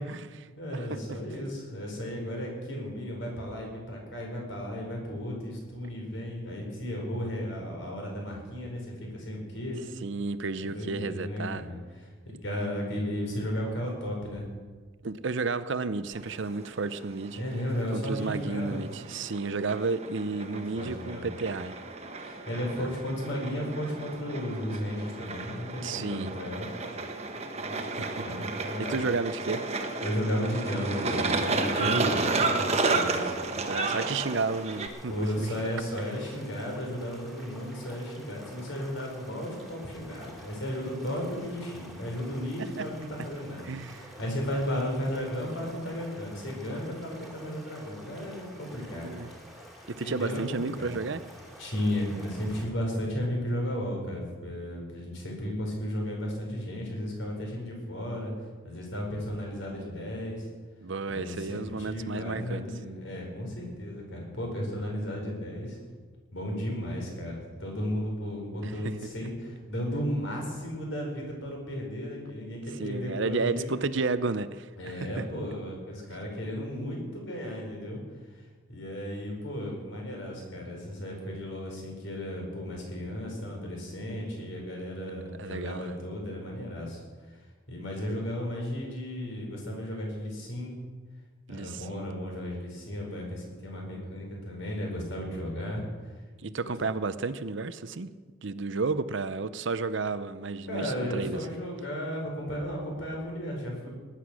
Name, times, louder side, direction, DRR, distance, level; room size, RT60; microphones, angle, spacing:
voice 1, 0.0-1.2 10.0-11.7 15.0-17.4 17.9-21.7 22.8-22.9 25.8-26.3 27.8-28.1 28.8-29.6 31.8-32.3 33.6-35.7 42.6-42.9 43.6-44.1 49.0-49.3 49.9-51.2 60.8-62.7 68.6-68.7 72.8-75.2 85.4-86.0 91.5-92.0 96.4-98.1 98.4-101.4, right 4 dB, 60° right, 13 dB, 0.6 m, -32 dB
voice 2, 0.6-9.8 10.6-14.5 17.4-18.8 20.3-21.3 22.1-26.7 27.6-29.0 30.0-33.3 35.1-49.1 50.0-50.4 50.8-51.0 51.6-58.3 58.6-60.5 61.1-65.8 66.3-73.8 74.8-78.0 78.3-78.4 78.7-87.4 87.7-90.8 91.5-95.8 96.5-96.7 100.7-103.9, equal, 65° left, 0 dB, 5.0 m, -34 dB
sound 1, 16.1-34.9, right 3 dB, 30° right, 1.2 m, -32 dB
sound 2, 33.3-52.7, equal, ahead, 2.7 m, -49 dB
19.0 x 10.0 x 6.3 m, 1.4 s
head